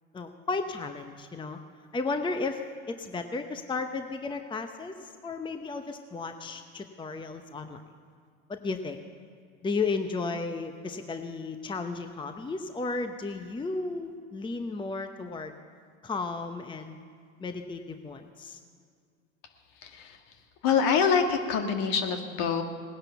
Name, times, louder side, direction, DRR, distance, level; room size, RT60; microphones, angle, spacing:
voice 1, 0.1-1.6 1.9-7.8 8.5-9.0 9.6-15.5 16.0-17.0 17.4-18.6, left 3 dB, 10° left, 7 dB, 0.8 m, -34 dB
voice 2, 19.8-20.2 20.6-22.6, left 6 dB, 55° left, 5 dB, 1.9 m, -25 dB
18.5 x 10.5 x 7.1 m, 2.2 s
hypercardioid pair, 90°, 40 cm